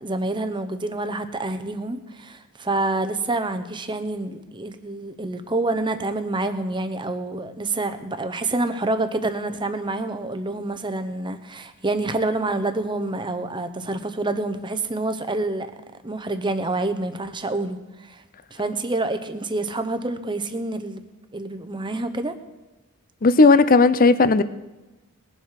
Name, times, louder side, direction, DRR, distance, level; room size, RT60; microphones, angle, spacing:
voice 1, 0.0-15.7 16.0-18.2 18.5-21.0 21.3-22.4, right 2 dB, 20° right, 0.9 m, -27 dB
voice 2, 23.2-24.4, left 3 dB, 40° left, 0.6 m, -15 dB
20.5 x 7.7 x 5.8 m
head